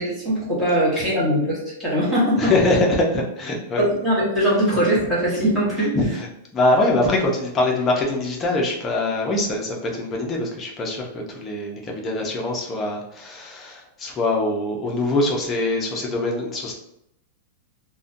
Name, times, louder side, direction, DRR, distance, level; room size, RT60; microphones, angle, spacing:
voice 1, 0.0-2.5 3.8-6.0, equal, 10° right, -7 dB, 0.9 m, -21 dB
voice 2, 2.4-3.8 5.9-6.3 6.5-16.7, left 2 dB, 15° left, -1 dB, 0.5 m, -23 dB
2.6 x 2.1 x 2.5 m, 0.80 s
supercardioid pair, 165°, 0 cm